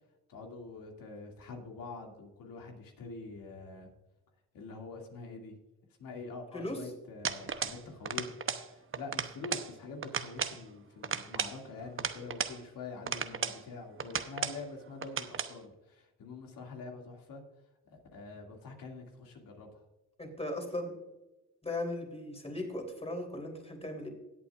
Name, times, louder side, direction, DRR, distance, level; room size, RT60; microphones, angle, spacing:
voice 1, 0.3-3.9 4.5-5.6 6.0-8.3 8.7-17.4 17.9-19.9, left 3 dB, 70° left, 1 dB, 2.5 m, -45 dB
sound 1, 7.2-7.8 8.1-8.7 8.9-9.7 10.0-10.6 11.0-12.6 13.1-13.6 14.0-14.6 15.0-15.5, right 6 dB, 35° right, 0.9 m, -35 dB
voice 2, 20.2-20.9 21.6-24.1, left 1 dB, 15° left, 3 dB, 3.3 m, -37 dB
17.5 x 8.3 x 2.5 m, 1.0 s
supercardioid pair, 75°, 36 cm